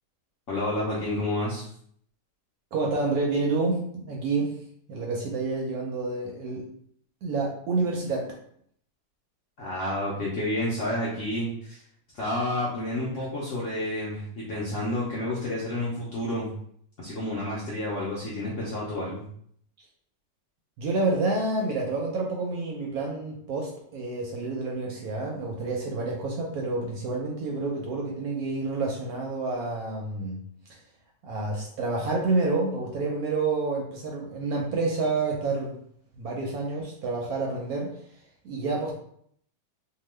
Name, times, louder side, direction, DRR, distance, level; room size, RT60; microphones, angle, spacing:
voice 1, 0.5-1.7 9.6-11.8 12.1-16.5 17.0-19.2, left 1 dB, 65° left, -6 dB, 0.7 m, -30 dB
voice 2, 2.7-4.5 4.9-6.6 7.2-8.3 20.8-30.4 31.2-35.8 36.1-37.9 38.4-38.9, right 3 dB, 70° right, -1 dB, 0.9 m, -28 dB
2.8 x 2.3 x 3.1 m, 0.66 s
omnidirectional pair, 1.9 m